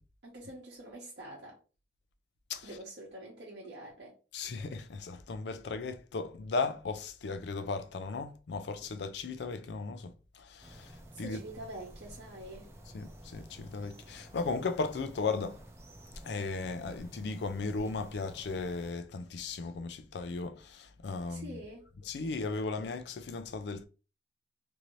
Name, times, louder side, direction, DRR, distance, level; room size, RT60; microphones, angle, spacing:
voice 1, 0.2-1.6 2.6-4.1 11.1-12.7 21.3-21.9, right 1 dB, 65° right, 0.8 m, -46 dB
voice 2, 4.3-10.9 11.2-11.4 12.9-15.6 16.2-21.6 22.1-23.9, left 4 dB, 65° left, 0.4 m, -36 dB
sound 1, 10.6-18.9, right 1 dB, 15° right, 0.5 m, -52 dB
2.7 x 2.6 x 3.0 m
head